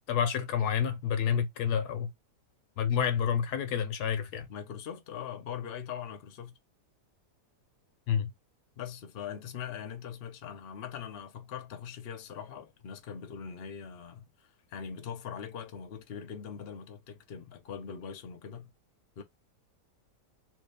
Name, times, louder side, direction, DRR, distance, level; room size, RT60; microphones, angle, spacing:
voice 1, 0.1-2.1 2.8-4.5 8.1-8.3, left 8 dB, 70° left, 1.0 m, -29 dB
voice 2, 4.5-6.5 8.8-18.7 19.2-19.3, left 8 dB, 50° left, 0.7 m, -41 dB
3.1 x 2.8 x 3.3 m
omnidirectional pair, 1.9 m